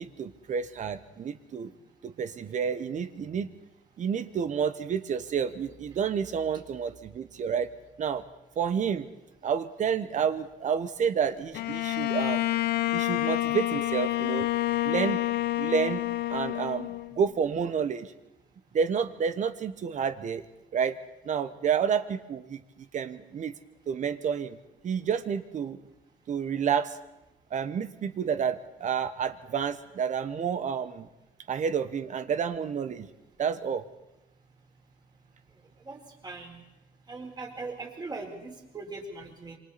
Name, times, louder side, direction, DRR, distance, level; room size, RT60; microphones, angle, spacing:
voice 1, 0.0-1.7 2.0-3.5 4.0-7.7 8.0-8.2 8.6-9.1 9.4-12.4 12.9-14.5 14.8-15.2 15.6-16.0 16.3-18.1 18.7-20.4 20.7-21.0 21.2-23.6 23.9-24.6 24.8-25.8 26.3-27.0 27.5-31.1 31.5-33.1 33.4-33.8, right 7 dB, 45° right, 12 dB, 1.1 m, -29 dB
Bowed string instrument, 11.5-17.3, left 15 dB, 70° left, 0.7 m, -28 dB
voice 2, 35.8-36.6 37.1-39.6, right 3 dB, 25° right, 2 dB, 4.1 m, -40 dB
27.0 x 24.0 x 4.2 m, 0.94 s
cardioid pair, 110°, 17 cm